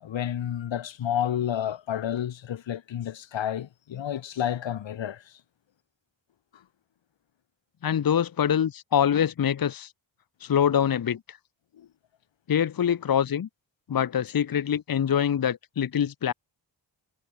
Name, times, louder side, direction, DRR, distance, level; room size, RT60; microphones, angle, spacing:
voice 1, 0.0-5.2 11.8-11.9, left 10 dB, 85° left, 1.5 m, -30 dB
voice 2, 7.8-9.9 10.4-11.4 12.5-13.5 13.9-16.3, left 9 dB, 50° left, 1.0 m, -24 dB
wide cardioid pair, 120°, 44 cm